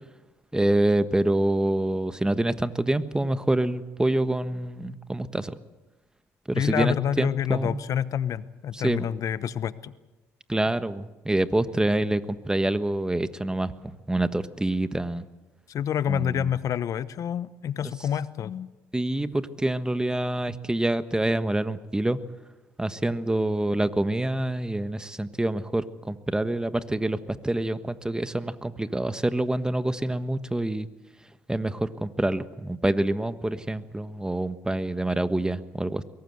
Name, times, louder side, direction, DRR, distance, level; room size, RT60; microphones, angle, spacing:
voice 1, 0.5-5.5 6.5-7.8 8.7-9.1 10.5-13.7 14.1-15.2 16.1-16.6 18.9-22.2 22.8-30.9 31.5-36.0, right 1 dB, 10° right, 12 dB, 1.4 m, -26 dB
voice 2, 6.5-9.9 15.7-18.7, left 9 dB, 60° left, 16 dB, 1.0 m, -28 dB
22.5 x 18.0 x 8.0 m, 1.1 s
supercardioid pair, 65°, 6 cm